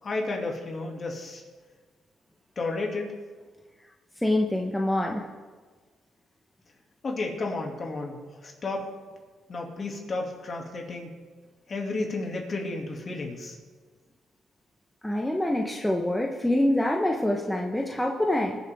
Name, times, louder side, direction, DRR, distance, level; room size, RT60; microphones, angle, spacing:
voice 1, 0.0-1.4 2.6-3.1 7.0-8.8 9.5-11.1 11.7-13.6, left 3 dB, 40° left, 0 dB, 2.5 m, -32 dB
voice 2, 4.2-5.2 15.0-18.6, left 1 dB, 5° left, 0 dB, 1.1 m, -25 dB
21.5 x 7.4 x 3.6 m, 1.4 s
cardioid pair, 90°, 0 cm